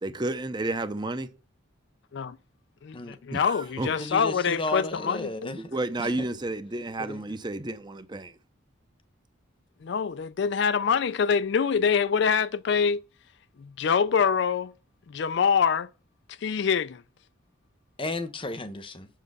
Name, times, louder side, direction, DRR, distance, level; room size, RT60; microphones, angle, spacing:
voice 1, 0.0-1.3 3.3-4.1 5.6-8.4, right 2 dB, 20° right, 0.6 m, -31 dB
voice 2, 2.8-5.6 9.8-13.0 13.6-14.7 15.1-15.9 16.4-17.0, left 6 dB, 60° left, 0.4 m, -25 dB
voice 3, 4.0-5.7 6.0-6.3 7.0-7.2 18.0-19.1, left 2 dB, 25° left, 0.9 m, -33 dB
7.5 x 6.6 x 6.6 m
head